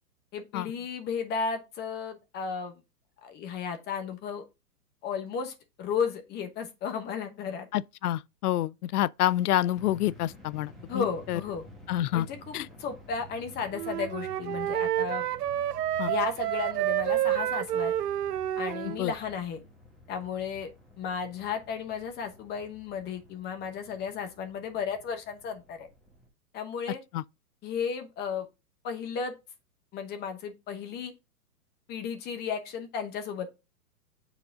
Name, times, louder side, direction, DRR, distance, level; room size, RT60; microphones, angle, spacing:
voice 1, 0.3-2.8 3.2-4.4 5.0-7.7 10.9-11.6 12.1-15.3 16.1-17.9 18.6-19.6 20.1-20.7 21.0-25.9 26.5-27.0 27.6-28.5 28.8-29.3 29.9-31.1 31.9-33.5, left 6 dB, 20° left, 1.0 m, -34 dB
voice 2, 7.7-11.4 11.9-12.3 12.5-12.7 16.0-16.1 18.8-19.1 27.1-27.2, left 13 dB, 75° left, 0.5 m, -28 dB
sound 1, 9.7-26.3, equal, ahead, 1.4 m, -52 dB
Wind instrument woodwind instrument, 13.7-19.0, right 12 dB, 90° right, 0.6 m, -29 dB
7.1 x 4.1 x 3.7 m
hypercardioid pair, 135°, 46 cm